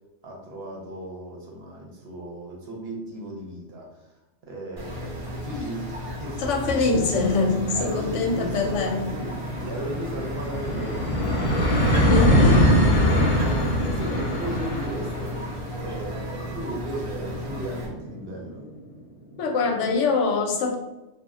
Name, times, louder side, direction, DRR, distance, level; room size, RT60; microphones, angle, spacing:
voice 1, 0.2-4.1 4.4-7.2 7.7-8.8 9.1-18.6, right 1 dB, 60° right, -1 dB, 0.9 m, -36 dB
sound 1, 4.8-17.9, left 1 dB, 35° right, 0.6 m, -34 dB
voice 2, 6.4-9.1 11.8-12.7 19.4-20.8, left 4 dB, 85° left, 2 dB, 0.9 m, -24 dB
sound 2, 7.7-18.7, equal, 50° left, 0.6 m, -24 dB
2.3 x 2.1 x 3.5 m, 1.0 s
omnidirectional pair, 1.2 m